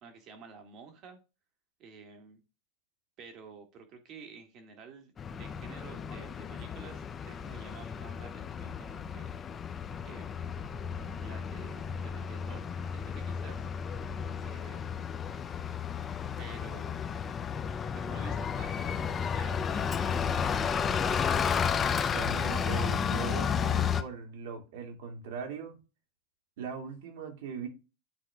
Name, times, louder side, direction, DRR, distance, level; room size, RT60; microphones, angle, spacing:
voice 1, 0.0-1.2 1.8-2.4 3.2-9.3 10.0-10.5 11.2-13.7 14.4-15.2 16.4-17.1 17.9-21.2, right 5 dB, 40° right, 1.8 m, -51 dB
Bus, 5.2-24.0, left 7 dB, 20° left, 0.5 m, -32 dB
voice 2, 22.1-25.7 26.6-27.7, right 5 dB, 70° right, 2.2 m, -40 dB
11.5 x 4.1 x 2.3 m
supercardioid pair, 145°, 0 cm